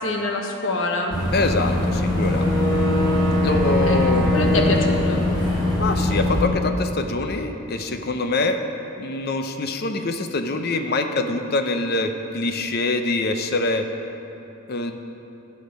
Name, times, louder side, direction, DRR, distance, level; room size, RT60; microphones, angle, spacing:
voice 1, 0.0-1.2 3.6-4.0 4.3-5.2, left 2 dB, 70° left, 2 dB, 1.2 m, -25 dB
Boat Water vehicle / Engine, 1.1-6.4, left 1 dB, 20° left, 2.7 m, -21 dB
voice 2, 1.3-2.5 3.4-4.3 5.8-8.6 9.0-13.9 14.7-15.0, left 2 dB, 50° left, 7 dB, 0.7 m, -24 dB
12.5 x 7.4 x 5.2 m, 2.9 s
head